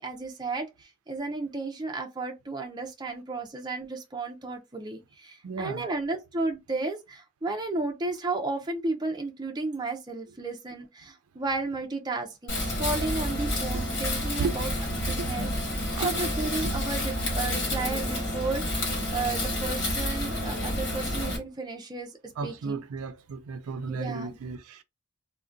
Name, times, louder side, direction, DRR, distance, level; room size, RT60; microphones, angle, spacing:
voice 1, 0.0-22.1 22.4-22.8 23.9-24.4, right 3 dB, 20° right, 0.4 m, -33 dB
voice 2, 5.4-5.9 13.6-13.7 14.4-14.6 15.2-15.3 16.0-16.1 16.6-16.7 22.4-24.8, right 4 dB, 90° right, 0.4 m, -34 dB
Wind, 12.5-21.4, left 1 dB, 55° left, 1.4 m, -29 dB
3.6 x 2.1 x 2.5 m
head